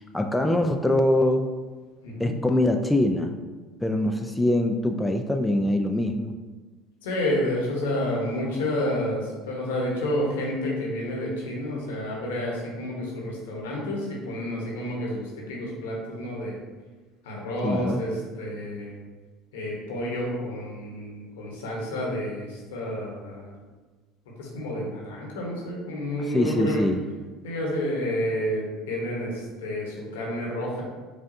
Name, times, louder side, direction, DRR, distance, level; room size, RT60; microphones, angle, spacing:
voice 1, 0.0-1.5 2.2-3.3 3.8-6.3 17.6-18.0 26.2-27.0, left 1 dB, 10° left, 4 dB, 0.3 m, -23 dB
voice 2, 2.0-2.3 7.0-16.6 17.2-19.0 19.5-23.5 24.4-26.9 27.4-30.8, left 1 dB, 80° left, -2 dB, 1.0 m, -30 dB
5.0 x 2.4 x 2.6 m, 1.3 s
hypercardioid pair, 75°, 0 cm